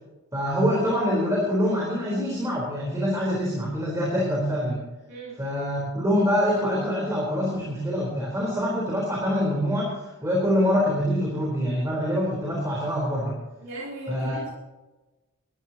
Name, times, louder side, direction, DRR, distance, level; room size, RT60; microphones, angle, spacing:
voice 1, 0.3-4.8 5.4-13.4 14.1-14.5, equal, 15° right, -4 dB, 4.3 m, -25 dB
voice 2, 5.1-5.4 13.6-14.5, right 1 dB, 60° right, -5 dB, 4.0 m, -37 dB
21.0 x 14.0 x 3.0 m, 1.1 s
head